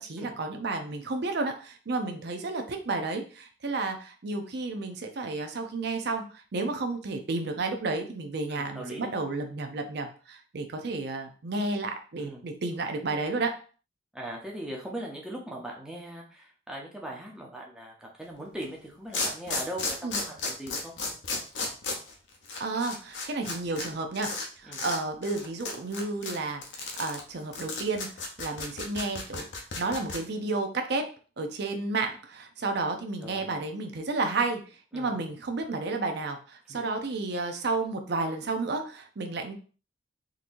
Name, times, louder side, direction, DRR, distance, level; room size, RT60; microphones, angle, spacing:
voice 1, 0.0-13.5 20.0-20.2 22.6-24.3 24.6-29.5 29.8-31.1 31.4-34.6 34.9-39.5, right 3 dB, 60° right, 5 dB, 0.6 m, -32 dB
voice 2, 8.5-9.1 12.1-12.4 14.1-20.9 24.7-24.8 33.2-33.5 34.9-35.2 36.7-36.8, right 1 dB, 5° right, -2 dB, 0.7 m, -40 dB
sound 1, 18.6-18.7 19.1-23.9 24.1-24.5 24.7-25.0 25.2-30.2, left 3 dB, 75° left, 0.8 m, -33 dB
3.8 x 2.9 x 2.6 m, 0.38 s
head